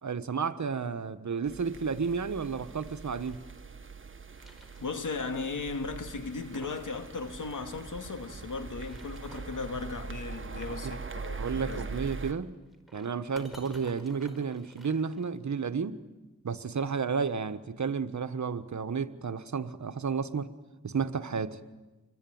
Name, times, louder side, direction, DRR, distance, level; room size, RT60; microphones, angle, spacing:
voice 1, 0.0-3.4 10.7-10.9 11.4-12.5 12.9-16.0 16.4-20.5 20.8-21.6, right 5 dB, 70° right, 1.3 m, -32 dB
sound 1, 1.5-12.3, right 4 dB, 40° right, 1.5 m, -42 dB
sound 2, 1.9-3.6 4.0-5.3 5.5-5.6 6.1-7.0 7.2-7.3 8.6-9.7 11.6-15.7, equal, ahead, 5.2 m, -54 dB
voice 2, 4.8-11.9, left 4 dB, 85° left, 2.5 m, -37 dB
26.5 x 22.0 x 9.4 m
wide cardioid pair, 70°, 30 cm